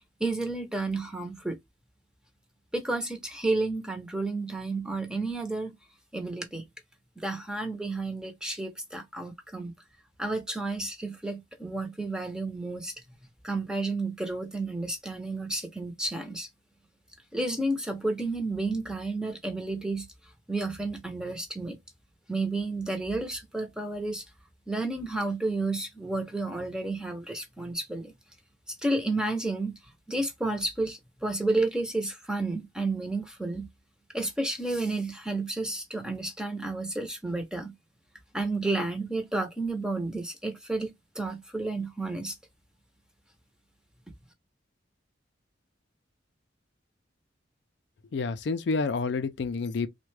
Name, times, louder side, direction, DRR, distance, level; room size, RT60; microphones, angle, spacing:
voice 1, 0.2-1.6 2.7-5.7 6.1-6.6 7.2-9.7 10.2-12.9 13.4-16.5 17.3-20.1 20.5-21.8 22.3-24.2 24.7-28.1 28.7-29.8 30.1-33.7 34.1-37.7 38.3-40.9 41.2-42.4, right 2 dB, 5° right, 0.6 m, -31 dB
voice 2, 48.1-49.9, left 4 dB, 60° left, 0.4 m, -29 dB
3.4 x 2.1 x 3.2 m
head